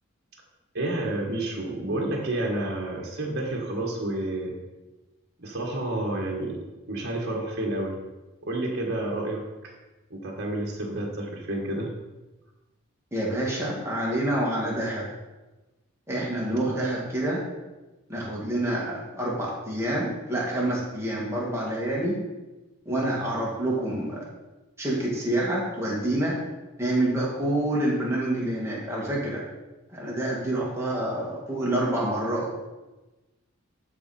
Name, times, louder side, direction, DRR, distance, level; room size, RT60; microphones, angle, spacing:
voice 1, 0.7-4.5 5.4-6.6 6.9-8.0 8.4-9.4 10.1-11.9, right 1 dB, 50° right, -1 dB, 1.6 m, -29 dB
voice 2, 13.1-15.1 16.1-17.4 18.1-22.2 22.9-24.2 24.8-26.4 26.8-29.4 29.9-32.6, right 1 dB, 10° right, -5 dB, 2.1 m, -27 dB
12.5 x 5.0 x 4.3 m, 1.1 s
head